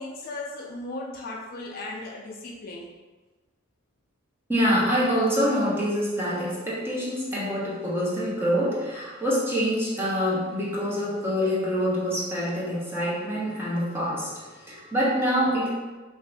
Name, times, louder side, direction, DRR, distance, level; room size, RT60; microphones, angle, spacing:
voice 1, 0.0-2.9, left 2 dB, 45° left, -2 dB, 0.4 m, -36 dB
voice 2, 4.5-15.7, equal, 10° right, -7 dB, 0.8 m, -26 dB
2.7 x 2.4 x 3.4 m, 1.3 s
head